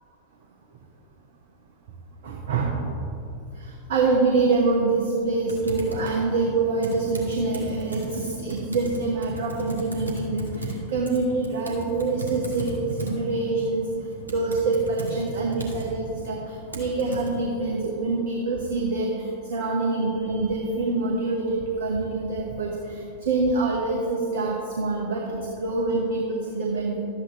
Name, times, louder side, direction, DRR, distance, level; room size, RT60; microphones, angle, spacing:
voice 1, 2.2-2.8 3.5-13.9 14.3-27.0, right 3 dB, 60° right, -1 dB, 1.1 m, -25 dB
Typing, 5.5-17.3, right 1 dB, 80° right, 1.4 m, -36 dB
12.0 x 8.2 x 3.4 m, 2.6 s
figure-of-eight pair, 90°, 0 cm